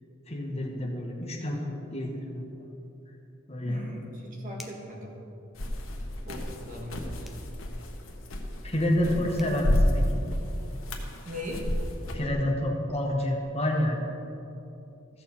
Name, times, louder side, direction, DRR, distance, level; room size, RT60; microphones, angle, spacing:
voice 1, 0.3-2.7 3.5-3.8 8.6-10.2 12.1-14.0, left 1 dB, 30° left, 0 dB, 1.4 m, -29 dB
voice 2, 3.6-5.1 6.2-7.3 11.2-11.6, left 1 dB, 40° right, -1 dB, 1.9 m, -39 dB
sound 1, 4.6-5.0 7.2-7.5 9.0-9.1 9.4-9.6, left 1 dB, ahead, 0.6 m, -48 dB
sound 2, 5.5-12.3, left 1 dB, 80° left, 1.2 m, -31 dB
14.5 x 6.6 x 4.3 m, 2.8 s
head